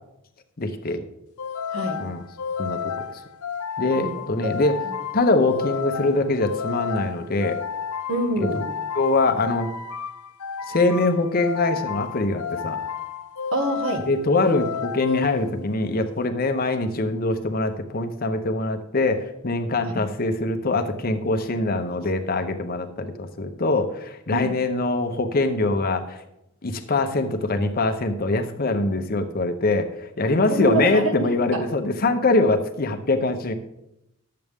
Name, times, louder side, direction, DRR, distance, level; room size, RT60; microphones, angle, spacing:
voice 1, 0.6-1.0 2.0-2.2 2.6-2.8 3.8-4.8 5.1-7.6 8.9-9.7 10.7-12.8 14.1-26.2 26.6-33.5, left 2 dB, 45° left, 6 dB, 0.7 m, -23 dB
sound 1, 1.4-15.9, left 6 dB, 85° left, 0.5 m, -31 dB
voice 2, 1.7-2.0 3.9-4.2 8.1-8.7 13.5-14.1 19.9-20.0 24.3-24.5 30.5-31.6, right 2 dB, 65° right, 3 dB, 1.5 m, -26 dB
11.0 x 7.6 x 3.5 m, 0.84 s
head